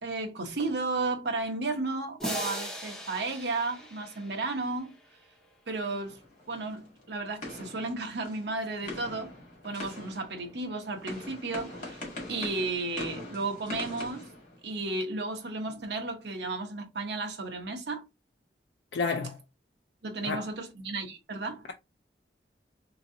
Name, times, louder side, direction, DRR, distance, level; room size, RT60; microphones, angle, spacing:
voice 1, 0.0-5.0 5.7-6.2 6.5-9.3 9.6-14.3 14.6-18.1 20.0-21.7, right 3 dB, 70° right, 0.9 m, -33 dB
sound 1, 2.2-5.0, equal, 5° left, 0.7 m, -39 dB
sound 2, 6.0-15.1, left 2 dB, 45° left, 2.0 m, -43 dB
voice 2, 18.9-19.4 20.2-20.4, left 4 dB, 80° left, 0.4 m, -30 dB
3.7 x 3.0 x 2.6 m
head